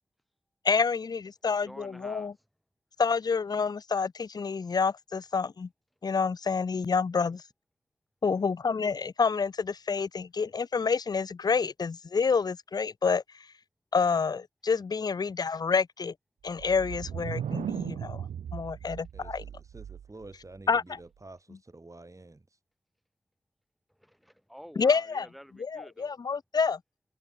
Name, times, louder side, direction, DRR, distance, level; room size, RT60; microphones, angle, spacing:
voice 1, 0.6-2.3 3.0-5.7 6.0-7.4 8.2-13.2 13.9-16.1 16.4-18.3 18.5-19.4 20.7-20.8 24.8-25.3 25.6-26.8, left 5 dB, 35° left, 0.4 m, -28 dB
voice 2, 1.6-2.3 24.0-26.1, equal, ahead, 6.8 m, -49 dB
sound 1, 16.5-20.3, right 9 dB, 90° right, 1.4 m, -37 dB
voice 3, 19.1-22.6, right 2 dB, 25° right, 3.4 m, -50 dB
cardioid pair, 60°, 12 cm